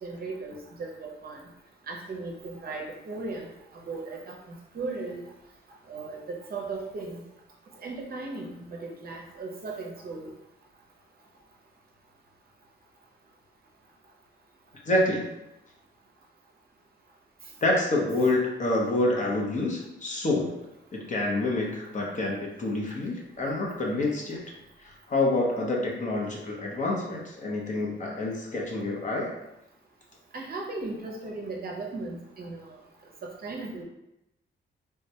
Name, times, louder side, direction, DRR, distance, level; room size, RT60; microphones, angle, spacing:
voice 1, 0.0-1.4 1.9-5.3 5.9-7.2 7.8-10.3 30.3-32.6 33.2-33.8, right 3 dB, 50° right, 0 dB, 0.6 m, -37 dB
voice 2, 14.8-15.2 17.6-20.5 20.9-24.4 24.8-29.4, left 2 dB, 40° left, -1 dB, 0.6 m, -27 dB
3.4 x 2.1 x 2.8 m, 0.88 s
wide cardioid pair, 150°, 20 cm